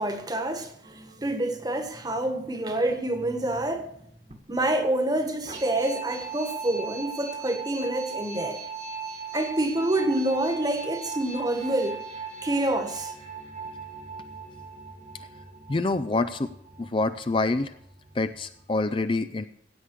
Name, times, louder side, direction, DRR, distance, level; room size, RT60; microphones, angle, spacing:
voice 1, 0.0-3.9 4.5-8.6 9.3-12.0 12.4-13.1, right 1 dB, 25° right, 1.5 m, -27 dB
sound 1, 0.8-18.7, right 5 dB, 40° right, 1.6 m, -40 dB
voice 2, 15.7-16.5 16.8-17.7 18.1-19.5, left 3 dB, 30° left, 0.5 m, -26 dB
16.0 x 8.5 x 4.7 m
head